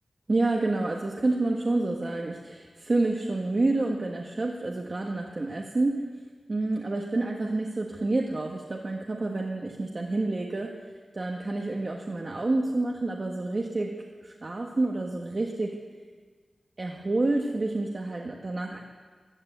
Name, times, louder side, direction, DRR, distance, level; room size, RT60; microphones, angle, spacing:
voice 1, 0.3-6.0 6.5-10.7 11.1-13.9 14.2-15.7 16.8-18.8, right 2 dB, 45° right, 0 dB, 1.4 m, -28 dB
15.5 x 12.0 x 8.0 m, 1.5 s
wide cardioid pair, 90°, 0 cm